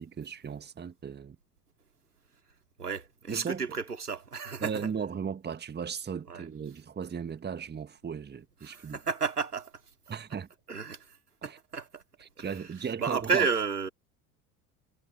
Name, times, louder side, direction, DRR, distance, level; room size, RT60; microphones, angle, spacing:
voice 1, 0.0-1.4 3.3-3.6 4.6-9.0 10.1-10.5 11.4-11.6 12.4-13.5, right 6 dB, 20° right, 1.7 m, -36 dB
voice 2, 2.8-4.9 6.3-6.5 8.6-9.7 10.1-10.2 10.7-11.2 11.4-12.0 12.4-13.9, right 5 dB, 90° right, 3.2 m, -32 dB
figure-of-eight pair, 65°, 45 cm